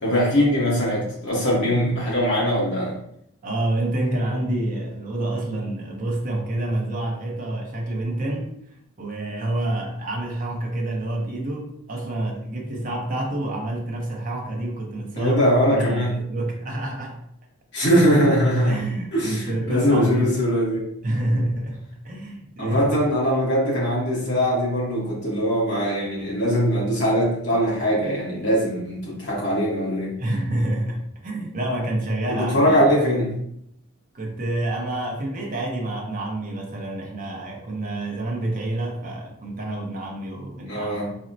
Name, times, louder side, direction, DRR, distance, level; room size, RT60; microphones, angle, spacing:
voice 1, 0.0-2.9 15.2-16.1 17.7-18.8 19.1-20.9 21.3-21.4 22.6-30.2 32.3-33.4 40.7-41.1, equal, 50° left, -5 dB, 1.1 m, -21 dB
voice 2, 3.4-8.5 9.0-15.3 15.7-17.2 18.7-20.4 21.0-22.9 29.2-29.3 30.2-32.7 34.1-41.1, right 1 dB, 35° right, 0 dB, 0.6 m, -28 dB
4.1 x 2.0 x 2.6 m, 0.72 s
head